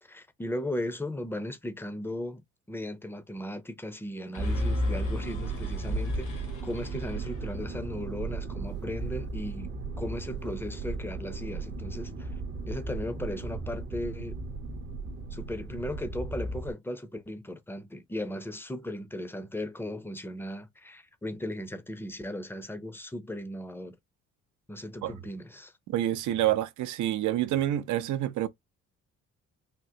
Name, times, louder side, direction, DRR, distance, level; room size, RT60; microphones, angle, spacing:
voice 1, 0.0-12.3 12.7-14.4 15.3-24.0 24.7-25.7, left 1 dB, 5° left, 0.6 m, -37 dB
sound 1, 4.3-8.4, left 7 dB, 75° left, 1.6 m, -50 dB
Motor vehicle (road), 4.4-16.7, right 2 dB, 35° right, 0.7 m, -34 dB
voice 2, 25.9-28.5, right 13 dB, 75° right, 0.6 m, -27 dB
3.6 x 2.1 x 2.7 m
cardioid pair, 90°, 30 cm